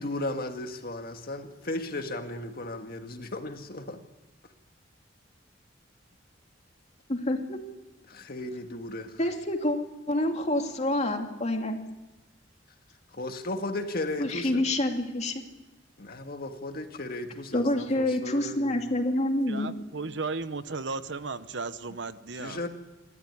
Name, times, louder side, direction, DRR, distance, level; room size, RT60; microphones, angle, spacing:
voice 1, 0.0-4.0 8.1-9.1 13.1-14.7 16.0-18.8 22.4-22.7, left 2 dB, 50° left, 5 dB, 1.9 m, -35 dB
voice 2, 7.1-7.6 9.2-9.8 10.1-11.8 14.2-15.4 17.5-19.7, left 1 dB, 35° left, 4 dB, 2.5 m, -27 dB
voice 3, 19.5-22.6, right 4 dB, 70° right, 13 dB, 1.0 m, -35 dB
28.0 x 13.5 x 9.7 m, 1.1 s
head